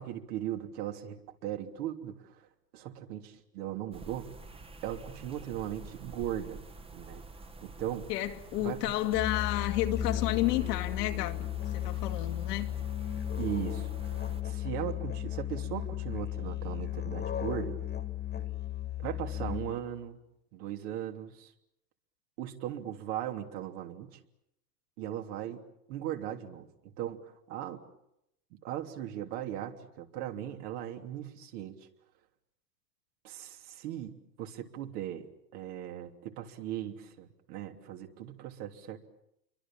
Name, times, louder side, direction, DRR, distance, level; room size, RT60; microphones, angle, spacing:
voice 1, 0.0-2.5 2.7-4.3 4.8-6.6 6.9-7.2 7.6-8.1 8.6-8.8 13.4-17.8 19.0-20.2 20.5-21.5 22.4-24.2 25.0-25.6 25.9-27.8 28.6-31.9 33.2-39.0, right 11 dB, 65° right, 4 dB, 3.2 m, -38 dB
sound 1, 3.9-14.4, right 3 dB, 10° right, 1.4 m, -48 dB
voice 2, 8.1-12.7, left 15 dB, 70° left, 5 dB, 2.3 m, -31 dB
Musical instrument, 9.1-19.9, left 11 dB, 20° left, 2.0 m, -35 dB
28.0 x 24.0 x 7.5 m, 0.80 s
hypercardioid pair, 110°, 49 cm